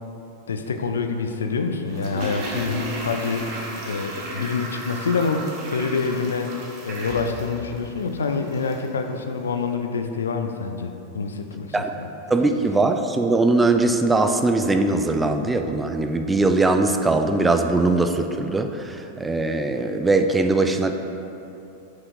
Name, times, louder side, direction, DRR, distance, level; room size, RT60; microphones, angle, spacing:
voice 1, 0.5-6.6 6.8-12.1, left 4 dB, 70° left, 6 dB, 0.4 m, -26 dB
Toilet flush, 1.9-9.0 9.2-9.3, right 2 dB, 40° right, 1.2 m, -35 dB
voice 2, 12.3-20.9, right 2 dB, 10° right, 6 dB, 0.4 m, -21 dB
6.1 x 4.7 x 4.5 m, 2.8 s
figure-of-eight pair, 90°, 0 cm